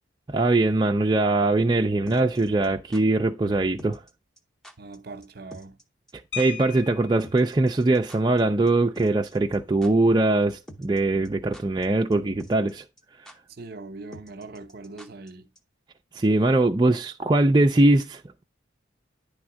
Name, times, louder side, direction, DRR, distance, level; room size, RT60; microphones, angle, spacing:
voice 1, 0.3-4.0 6.4-12.8 16.1-18.4, right 2 dB, 20° right, 0.4 m, -22 dB
sound 1, 2.1-3.0 3.8-4.1 4.4-4.5 4.6-5.0 5.2-5.3 5.5-5.8 6.1-6.2 6.4-6.5 7.2-8.4 8.7-8.8 8.9-9.6 9.8-9.9 10.7-11.0 11.2-11.9 12.1-12.2 12.4-12.7 13.0-13.1 13.3-13.4 14.1-15.3 15.6-15.7, equal, ahead, 0.8 m, -46 dB
voice 2, 4.8-5.8 13.5-15.5, right 3 dB, 50° right, 0.8 m, -41 dB
sound 2, 6.3-7.4 8.8-9.0 9.3-9.5 9.9-10.2, left 8 dB, 70° left, 1.3 m, -38 dB
9.8 x 3.5 x 6.1 m
head